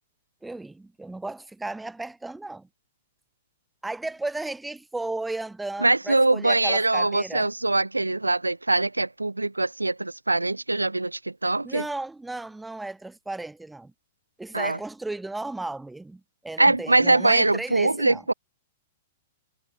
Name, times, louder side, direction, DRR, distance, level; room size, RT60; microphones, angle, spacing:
voice 1, 0.4-2.7 3.8-7.5 11.6-13.9 14.4-18.2, right 2 dB, 5° right, 1.8 m, -34 dB
voice 2, 5.8-11.8 14.5-14.8 16.6-18.3, right 2 dB, 80° right, 0.6 m, -23 dB
figure-of-eight pair, 105°, 0 cm